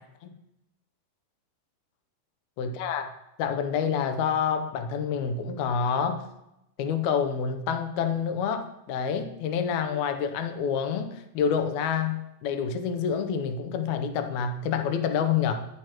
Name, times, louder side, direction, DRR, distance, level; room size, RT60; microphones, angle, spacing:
voice 1, 2.6-3.1 3.4-6.2 6.8-15.7, left 7 dB, 70° left, 8 dB, 1.9 m, -28 dB
10.0 x 9.5 x 2.9 m, 0.86 s
omnidirectional pair, 3.9 m